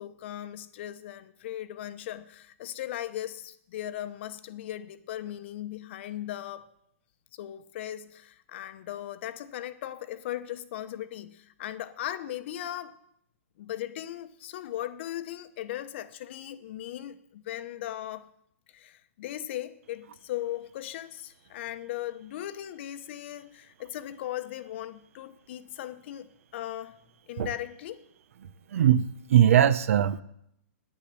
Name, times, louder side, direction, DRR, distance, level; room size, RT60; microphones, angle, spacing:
voice 1, 0.0-6.6 7.3-13.0 13.6-18.3 18.7-27.0 27.3-28.0, left 12 dB, 50° left, 0.9 m, -38 dB
voice 2, 28.7-30.2, right 10 dB, 65° right, 0.7 m, -21 dB
10.0 x 9.9 x 6.9 m
hypercardioid pair, 145°, 8 cm